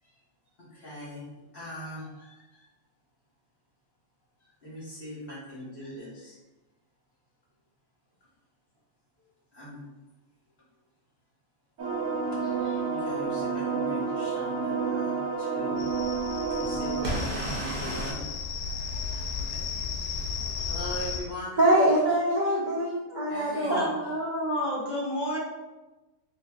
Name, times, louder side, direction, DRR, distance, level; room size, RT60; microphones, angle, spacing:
voice 1, 0.7-1.2 1.5-2.6 4.4-6.3 9.5-9.8 12.3-15.8 16.5-18.2 19.1-19.2 19.5-19.6 20.7-21.6 23.3-23.8, equal, 40° left, -7 dB, 1.5 m, -41 dB
sound 1, 11.8-18.1, right 4 dB, 75° right, 1.3 m, -30 dB
sound 2, 15.8-21.2, left 5 dB, 75° left, 1.0 m, -34 dB
voice 2, 21.6-23.9, right 1 dB, 50° right, -5 dB, 0.5 m, -24 dB
voice 3, 23.7-25.4, equal, 20° left, -6 dB, 1.0 m, -29 dB
4.3 x 3.3 x 2.4 m, 1.1 s
omnidirectional pair, 1.5 m